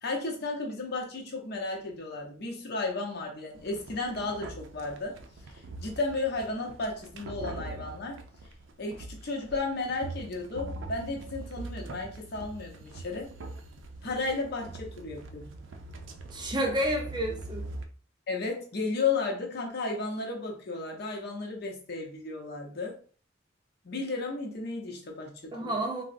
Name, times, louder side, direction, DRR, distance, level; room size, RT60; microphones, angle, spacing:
voice 1, 0.0-5.1 5.5-8.2 8.8-13.3 14.0-15.5 18.3-22.9 23.8-25.3 25.6-25.7, left 3 dB, 55° left, 0 dB, 0.7 m, -33 dB
sound 1, 3.5-17.8, right 2 dB, 75° right, 0.4 m, -43 dB
voice 2, 16.3-17.7 25.5-26.0, right 1 dB, 25° right, 2 dB, 0.6 m, -30 dB
3.6 x 2.0 x 2.5 m, 0.42 s
head